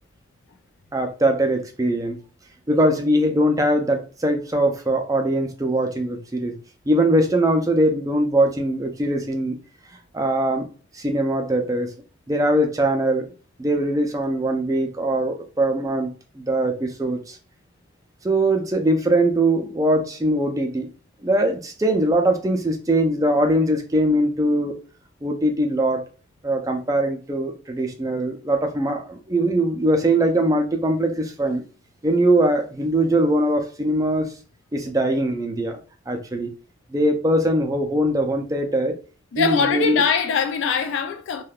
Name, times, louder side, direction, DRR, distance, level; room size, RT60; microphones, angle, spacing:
voice 1, 0.9-2.2 2.7-6.6 6.9-9.6 10.1-10.7 10.9-11.9 12.3-13.3 13.6-16.1 16.4-17.4 18.2-20.9 21.2-24.8 25.2-26.1 26.4-31.6 32.0-34.3 34.7-35.8 36.1-36.5 36.9-39.0 39.4-40.0, right 1 dB, 15° right, 0.4 m, -21 dB
voice 2, 39.3-41.4, left 6 dB, 70° left, 0.3 m, -22 dB
3.4 x 2.2 x 2.3 m
head